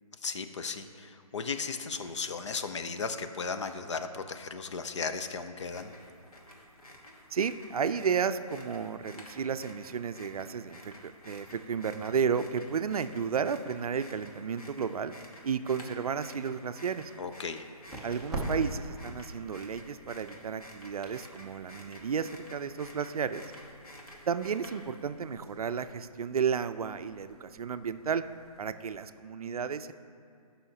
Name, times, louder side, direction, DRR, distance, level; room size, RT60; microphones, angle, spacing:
voice 1, 0.2-5.9 17.2-17.7, left 5 dB, 50° left, 8 dB, 0.5 m, -36 dB
sound 1, 5.6-25.1, left 1 dB, 75° left, 1.6 m, -51 dB
voice 2, 7.3-15.1 15.4-17.1 18.0-23.4 24.3-28.2 28.6-29.9, right 6 dB, 70° right, 11 dB, 0.4 m, -32 dB
sound 2, 16.5-28.9, right 1 dB, ahead, 0.5 m, -45 dB
14.0 x 5.6 x 2.8 m, 2.4 s
hypercardioid pair, 160°, 19 cm